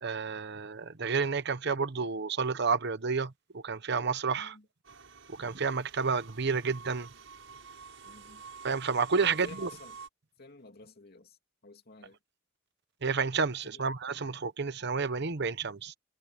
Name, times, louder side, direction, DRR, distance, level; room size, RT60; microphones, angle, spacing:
voice 1, 0.0-4.6 5.3-7.1 8.6-9.7 13.0-15.9, right 5 dB, 60° right, 1.0 m, -30 dB
voice 2, 4.4-4.7 8.0-8.4 9.2-9.9 10.4-11.4 11.6-12.2 13.6-13.8, left 2 dB, 50° left, 2.7 m, -51 dB
sound 1, 4.8-10.1, right 5 dB, 75° right, 7.6 m, -49 dB
head